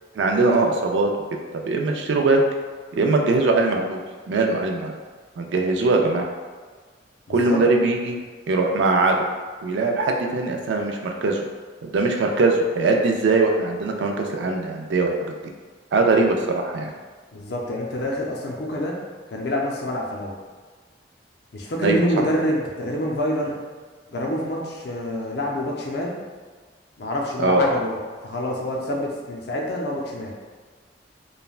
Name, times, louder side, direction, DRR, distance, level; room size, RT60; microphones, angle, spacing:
voice 1, 0.1-1.1 1.7-2.4 2.9-4.9 5.4-6.3 7.3-8.2 8.5-9.2 9.6-11.4 11.9-15.1 15.9-16.9 21.8-22.0 27.4-27.6, right 3 dB, 70° right, 2 dB, 0.3 m, -21 dB
voice 2, 7.3-7.6 17.3-19.0 19.3-20.3 21.5-23.6 24.1-26.1 27.0-30.3, left 1 dB, 65° left, -2 dB, 0.5 m, -27 dB
3.2 x 2.1 x 2.3 m, 1.5 s
head